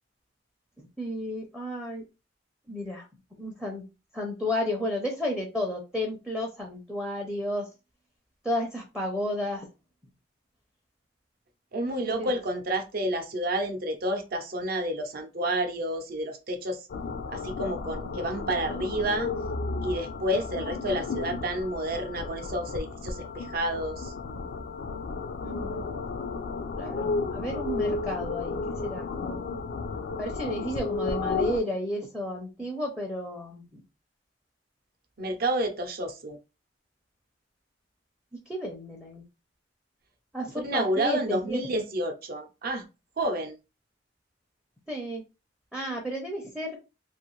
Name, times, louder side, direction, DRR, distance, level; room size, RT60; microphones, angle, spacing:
voice 1, 1.0-2.0 2.7-3.1 3.4-3.8 4.1-7.7 8.4-9.7 12.0-12.3 25.4-25.8 26.8-29.6 30.2-33.8 38.5-39.2 40.3-41.8 44.9-45.2 45.7-46.8, left 1 dB, 5° right, 0.5 m, -32 dB
voice 2, 11.7-16.8 17.3-19.3 19.8-24.1 35.2-36.4 40.6-42.8 43.2-43.5, right 1 dB, 55° right, 0.6 m, -30 dB
sound 1, 16.9-31.6, left 4 dB, 55° left, 0.3 m, -33 dB
2.5 x 2.4 x 3.0 m
head